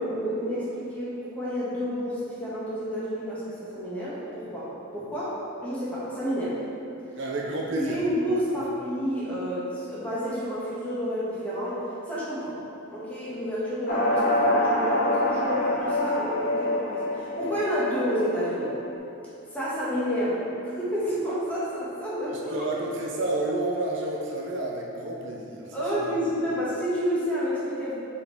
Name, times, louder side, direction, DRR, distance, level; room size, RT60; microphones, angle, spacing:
voice 1, 0.0-6.5 7.8-12.6 12.9-18.7 19.5-22.7 25.7-27.9, equal, 5° left, -10 dB, 1.5 m, -30 dB
voice 2, 7.2-8.0 22.5-25.8 26.0-26.1, right 2 dB, 55° right, -2 dB, 0.6 m, -30 dB
sound 1, 13.9-18.9, left 1 dB, 40° left, 1.0 m, -26 dB
5.3 x 4.5 x 4.5 m, 2.7 s
head